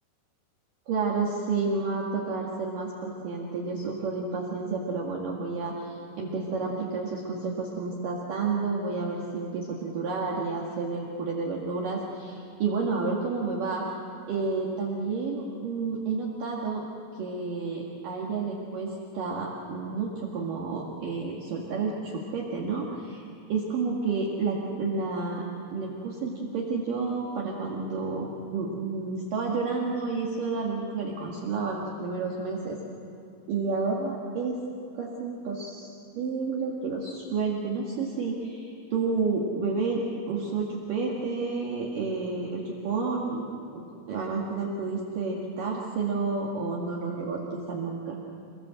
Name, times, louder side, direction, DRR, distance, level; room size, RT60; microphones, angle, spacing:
voice 1, 0.9-13.8 14.3-16.8 17.2-23.2 23.5-25.4 25.7-32.8 33.5-34.6 34.9-35.9 36.2-43.4 43.7-48.2, right 4 dB, 55° right, -3 dB, 3.1 m, -30 dB
28.0 x 19.0 x 7.8 m, 2.7 s
omnidirectional pair, 5.3 m